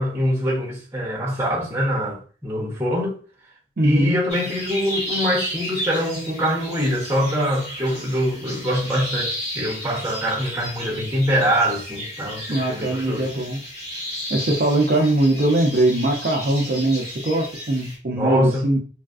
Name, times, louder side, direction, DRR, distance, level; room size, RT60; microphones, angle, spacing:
voice 1, 0.0-3.2 3.8-13.3 18.1-18.7, equal, 15° right, 0.8 m, -24 dB
voice 2, 3.8-4.2 12.5-13.6 14.3-18.8, right 1 dB, 55° right, 0.5 m, -21 dB
sound 1, 4.3-18.0, equal, 40° left, 1.2 m, -33 dB
3.3 x 2.4 x 2.3 m
head